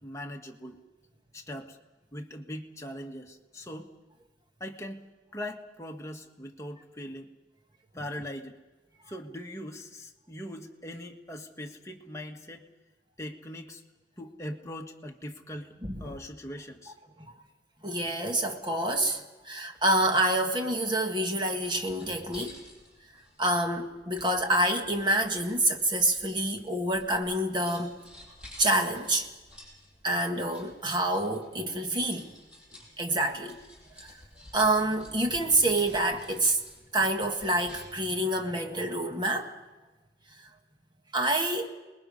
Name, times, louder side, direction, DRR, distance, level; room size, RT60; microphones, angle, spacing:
voice 1, 0.0-0.8 1.3-1.8 2.1-3.9 4.6-7.3 7.9-8.6 9.1-12.6 13.2-13.8 14.2-15.7 16.0-16.9, left 1 dB, 15° left, 1.6 m, -41 dB
voice 2, 15.8-16.2 17.2-17.3 17.8-22.6 23.4-28.0 28.6-29.3 30.0-32.3 33.0-33.6 34.0-34.1 34.5-36.6 36.9-39.5 41.1-41.7, right 1 dB, 25° right, 1.8 m, -27 dB
sound 1, 21.6-38.1, left 1 dB, 5° right, 6.9 m, -53 dB
28.5 x 21.0 x 5.5 m
head